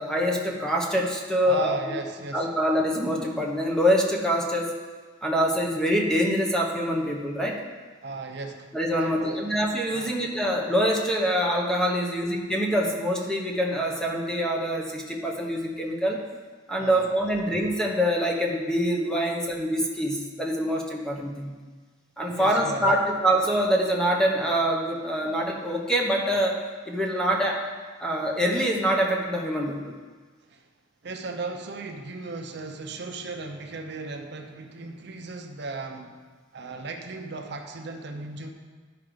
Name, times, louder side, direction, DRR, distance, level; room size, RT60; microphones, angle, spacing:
voice 1, 0.0-1.8 2.3-4.7 5.2-7.6 8.7-16.2 16.7-21.5 22.2-27.6 28.0-29.9, equal, 5° left, -1 dB, 0.9 m, -25 dB
voice 2, 1.4-2.5 8.0-8.7 9.0-9.6 9.9-10.2 16.8-17.1 22.3-23.0 30.5-30.6 31.0-36.2 36.5-38.5, right 3 dB, 60° right, 4 dB, 0.7 m, -36 dB
10.5 x 4.9 x 5.0 m, 1.5 s
head